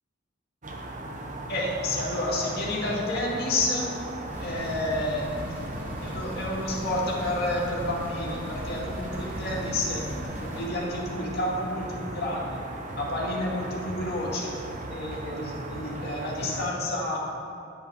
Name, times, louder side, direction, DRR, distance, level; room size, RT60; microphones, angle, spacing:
sound 1, 0.6-16.7, right 1 dB, 35° right, 0.8 m, -37 dB
voice 1, 1.5-3.9 4.4-5.5 6.0-10.0 10.4-12.6 13.0-14.5 14.9-17.4, left 1 dB, 50° left, -4 dB, 2.1 m, -30 dB
sound 2, 4.3-10.7, equal, 10° right, 1.3 m, -38 dB
10.0 x 5.6 x 6.7 m, 2.6 s
head